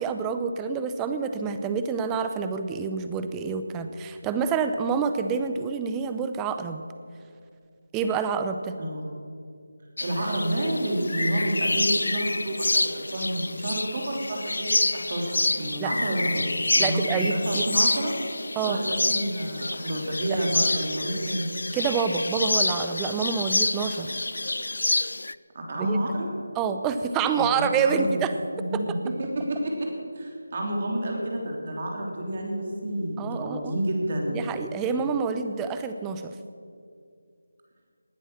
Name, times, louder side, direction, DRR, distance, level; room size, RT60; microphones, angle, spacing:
voice 1, 0.0-6.8 7.9-8.8 15.8-15.9 16.8-17.7 18.6-18.8 21.7-24.1 25.8-26.0 26.6-28.4 33.2-33.8 34.3-36.3, right 6 dB, 10° right, 8 dB, 0.7 m, -27 dB
sound 1, 10.0-25.4, left 2 dB, 65° left, 0.4 m, -28 dB
voice 2, 10.0-18.2 18.6-21.5 25.5-26.3 27.3-28.2 28.5-29.9 30.1-34.4, right 1 dB, 40° right, 0 dB, 3.3 m, -29 dB
19.0 x 10.0 x 6.4 m, 2.4 s
figure-of-eight pair, 160°, 0 cm